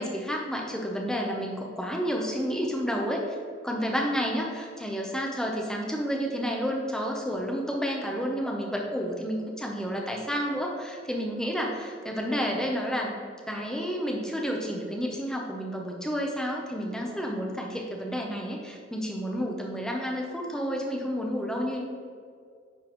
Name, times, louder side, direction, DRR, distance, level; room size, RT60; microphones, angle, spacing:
voice 1, 0.0-3.3 3.6-13.1 13.5-21.8, equal, 5° left, -1 dB, 0.7 m, -30 dB
9.8 x 3.8 x 3.0 m, 2.2 s
head